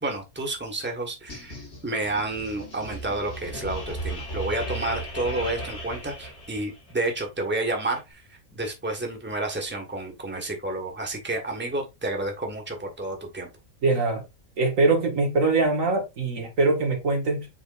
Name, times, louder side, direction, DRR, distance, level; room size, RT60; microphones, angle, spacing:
voice 1, 0.0-13.5, right 2 dB, 10° right, 1.6 m, -30 dB
sound 1, 1.3-6.9, right 1 dB, 50° left, 2.4 m, -36 dB
voice 2, 13.8-14.2 14.6-17.5, right 3 dB, 65° right, 2.0 m, -22 dB
7.3 x 4.9 x 2.6 m
omnidirectional pair, 1.5 m